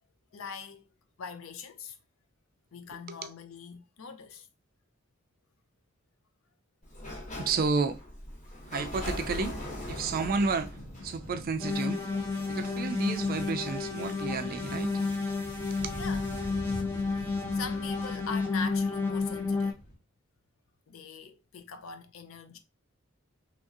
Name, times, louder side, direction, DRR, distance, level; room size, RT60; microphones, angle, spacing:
voice 1, 0.3-0.9 1.2-2.0 2.7-4.5 16.0-16.3 16.9-19.8 20.9-22.6, left 5 dB, 80° left, 0.5 m, -42 dB
voice 2, 2.9-3.3 7.4-8.0 8.7-9.6 9.9-12.0 12.5-15.0 15.7-15.8, right 4 dB, 45° right, 0.3 m, -31 dB
Sliding door, 6.8-12.5, left 1 dB, 35° left, 1.1 m, -40 dB
sound 1, 9.5-20.0, equal, 60° left, 1.3 m, -46 dB
sound 2, 11.6-19.7, left 4 dB, 10° left, 0.5 m, -31 dB
3.0 x 2.6 x 2.4 m
head